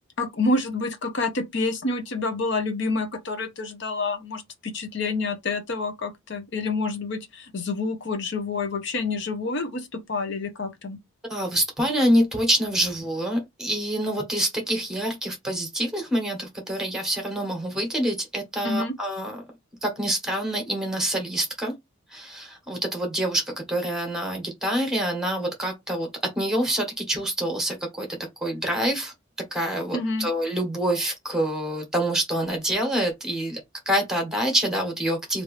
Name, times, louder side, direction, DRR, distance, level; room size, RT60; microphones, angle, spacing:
voice 1, 0.2-11.0 18.6-18.9 29.9-30.3, left 3 dB, 60° left, 0.8 m, -28 dB
voice 2, 11.3-19.4 19.8-21.7 22.1-28.1 28.4-29.1 29.5-33.6 33.8-35.4, right 1 dB, ahead, 1.2 m, -26 dB
3.1 x 2.6 x 3.1 m
head